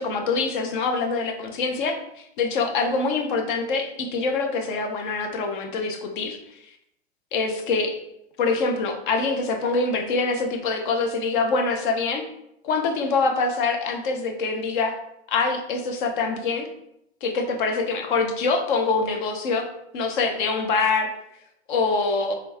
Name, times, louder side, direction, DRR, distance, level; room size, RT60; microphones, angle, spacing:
voice 1, 0.0-6.4 7.3-8.0 8.4-12.2 12.6-15.0 15.3-16.7 17.2-19.7 19.9-21.1 21.7-22.3, left 4 dB, 45° left, 4 dB, 0.7 m, -24 dB
3.6 x 3.0 x 3.4 m, 0.79 s
figure-of-eight pair, 100°, 34 cm